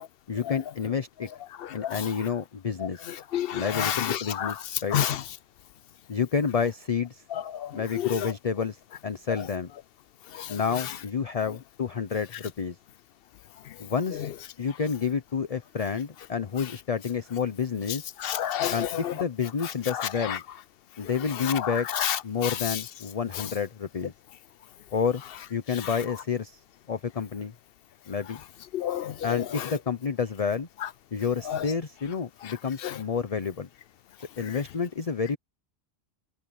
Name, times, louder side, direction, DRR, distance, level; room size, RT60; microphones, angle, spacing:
voice 1, 0.3-1.3 1.7-3.1 3.5-5.0 6.1-7.2 7.7-8.8 9.0-9.7 10.5-12.8 13.8-14.2 14.6-18.1 18.7-20.4 21.0-21.9 22.2-24.1 24.9-25.2 25.5-26.6 26.9-27.5 28.1-28.4 29.2-30.7 31.1-33.7 34.4-35.4, left 6 dB, 40° left, 0.8 m, -29 dB
voice 2, 1.6-2.1 3.3-4.6 4.9-5.2 7.3-8.3 10.3-10.6 14.2-14.3 18.2-19.1 19.6-20.4 21.4-22.8 28.7-29.7 30.8-30.9 31.5-31.6 32.4-32.5 32.8-33.0, left 10 dB, 70° left, 0.8 m, -30 dB
omnidirectional pair, 1.1 m